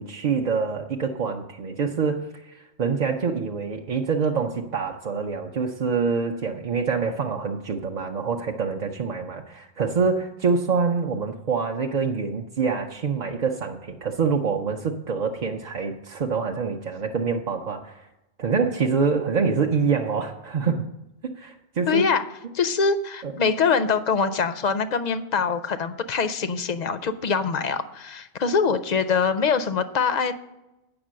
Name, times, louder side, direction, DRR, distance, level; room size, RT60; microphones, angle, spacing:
voice 1, 0.0-18.1 18.4-20.9 21.2-22.0 23.2-23.3, right 5 dB, 45° right, 2 dB, 0.6 m, -26 dB
voice 2, 21.9-22.2 22.5-30.3, left 5 dB, 50° left, 12 dB, 0.6 m, -24 dB
8.7 x 6.0 x 7.5 m, 0.94 s
omnidirectional pair, 1.1 m